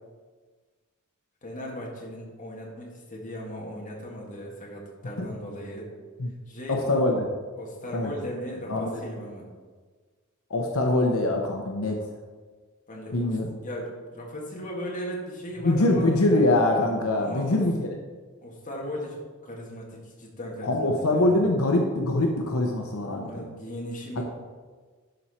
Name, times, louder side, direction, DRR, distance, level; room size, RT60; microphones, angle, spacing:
voice 1, 1.4-5.9 6.5-7.0 7.6-9.5 12.9-16.1 17.2-17.6 18.4-19.2 19.4-21.4 23.2-24.2, equal, 40° left, -2 dB, 1.9 m, -37 dB
voice 2, 6.7-7.2 7.9-8.1 8.7-9.0 10.5-12.0 13.1-13.5 15.6-17.9 20.6-23.4 24.2-24.3, left 2 dB, 80° left, 2 dB, 0.8 m, -23 dB
11.5 x 4.4 x 4.3 m, 1.4 s
head